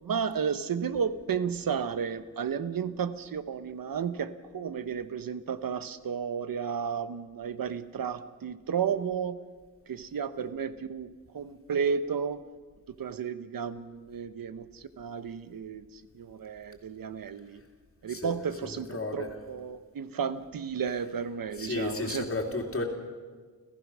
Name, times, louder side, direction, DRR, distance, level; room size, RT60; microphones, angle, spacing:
voice 1, 0.0-9.4 9.9-12.4 13.0-17.6 18.0-22.3, right 7 dB, 70° right, 12 dB, 1.0 m, -33 dB
voice 2, 18.6-19.3 21.6-22.8, left 3 dB, 40° left, 2 dB, 2.9 m, -33 dB
30.0 x 14.5 x 6.3 m, 1.4 s
wide cardioid pair, 150°, 35 cm